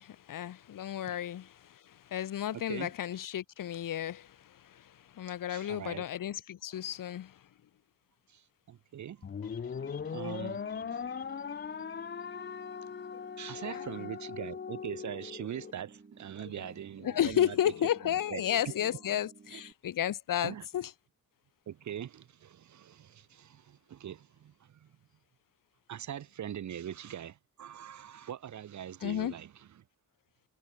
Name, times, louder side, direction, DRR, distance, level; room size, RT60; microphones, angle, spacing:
voice 1, 0.0-7.4 13.5-13.8 16.4-16.7 17.0-20.9 29.0-29.3, left 11 dB, 65° left, 0.8 m, -33 dB
voice 2, 2.5-2.9 5.5-6.0 8.3-8.4 8.7-9.3 10.1-10.6 13.4-17.6 18.3-18.4 19.5-19.6 20.4-20.7 21.7-24.9 25.9-29.7, right 10 dB, 55° right, 0.7 m, -42 dB
sound 1, 9.2-15.7, left 6 dB, 30° left, 0.6 m, -39 dB
sound 2, 9.4-12.9 13.1-13.2 13.6-13.7, left 9 dB, 80° left, 6.3 m, -58 dB
sound 3, 9.7-19.7, right 4 dB, 30° right, 3.2 m, -56 dB
wide cardioid pair, 160°, 36 cm